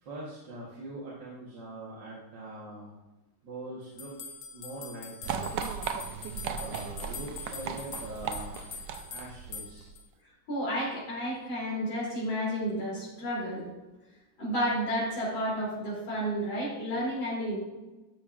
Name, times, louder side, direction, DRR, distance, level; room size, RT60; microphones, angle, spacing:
voice 1, 0.0-2.9 3.4-4.1 4.5-5.8 6.6-8.6 9.1-9.9, right 1 dB, 60° right, -5 dB, 1.8 m, -43 dB
sound 1, 4.0-10.0, left 6 dB, 85° left, 0.7 m, -43 dB
sound 2, 5.2-10.0, right 7 dB, 75° right, 1.0 m, -37 dB
voice 2, 10.5-13.7 14.4-17.6, equal, 65° left, -7 dB, 3.7 m, -31 dB
11.5 x 7.0 x 2.4 m, 1.1 s
omnidirectional pair, 2.4 m